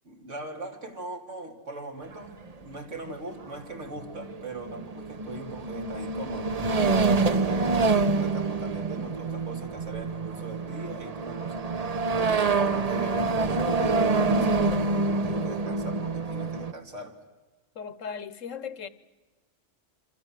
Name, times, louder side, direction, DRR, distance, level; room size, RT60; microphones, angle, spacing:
voice 1, 0.0-6.7 7.4-11.6 12.1-17.2, right 2 dB, 75° right, 3.1 m, -40 dB
sound 1, 2.1-2.2 3.1-3.2 3.4-3.5 3.8-16.7, right 3 dB, 35° right, 0.9 m, -26 dB
voice 2, 17.7-18.9, left 6 dB, 90° left, 1.5 m, -37 dB
26.5 x 26.0 x 7.5 m
omnidirectional pair, 1.3 m